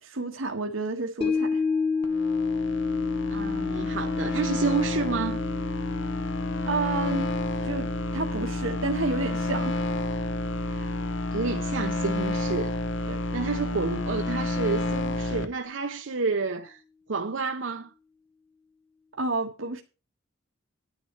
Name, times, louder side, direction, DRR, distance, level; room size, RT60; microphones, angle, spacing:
voice 1, 0.0-1.6 6.7-7.3 7.6-7.9 8.1-9.8 13.1-13.2 19.2-19.8, right 3 dB, 90° right, 1.6 m, -30 dB
sound 1, 1.2-11.6 11.9-12.0, left 4 dB, 30° left, 1.6 m, -32 dB
sound 2, 2.0-15.5, left 2 dB, 65° left, 1.1 m, -30 dB
voice 2, 3.3-5.4 10.6-10.9 11.3-12.8 13.3-16.8 17.1-17.9, right 4 dB, 70° right, 0.8 m, -30 dB
10.5 x 9.3 x 4.5 m
head